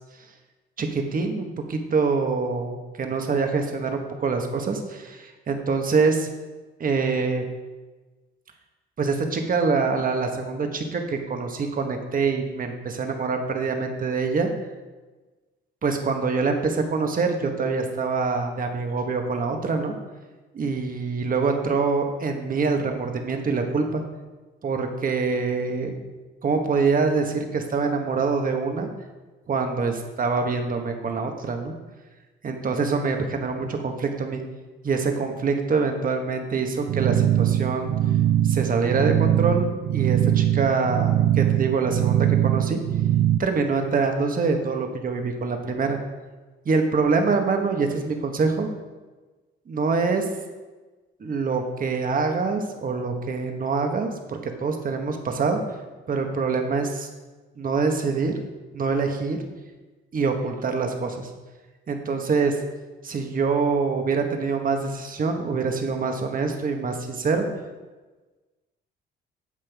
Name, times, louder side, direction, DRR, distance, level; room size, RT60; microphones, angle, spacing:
voice 1, 0.8-6.3 6.8-7.4 9.0-14.5 15.8-19.9 20.6-24.0 24.6-25.9 26.4-28.9 29.5-31.7 32.4-34.4 34.8-37.9 38.4-39.7 39.9-42.8 43.4-46.0 46.6-48.7 49.7-50.3 51.2-55.6 56.1-57.1 57.6-58.3 58.7-59.4 60.1-61.3 61.9-62.6 63.0-67.4, right 4 dB, 45° right, 4 dB, 1.4 m, -25 dB
sound 1, 36.9-43.4, right 12 dB, 65° right, 0.5 m, -21 dB
9.8 x 7.5 x 3.6 m, 1.2 s
cardioid pair, 90°, 20 cm